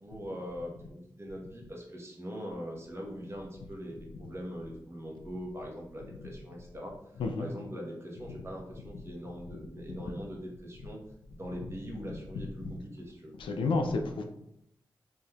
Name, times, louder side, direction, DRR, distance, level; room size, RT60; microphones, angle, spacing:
voice 1, 0.0-11.0 11.3-13.3, equal, 30° right, -2 dB, 1.1 m, -42 dB
voice 2, 13.4-14.2, left 3 dB, 75° left, 5 dB, 0.4 m, -30 dB
3.4 x 2.7 x 2.3 m, 0.77 s
supercardioid pair, 40°, 9 cm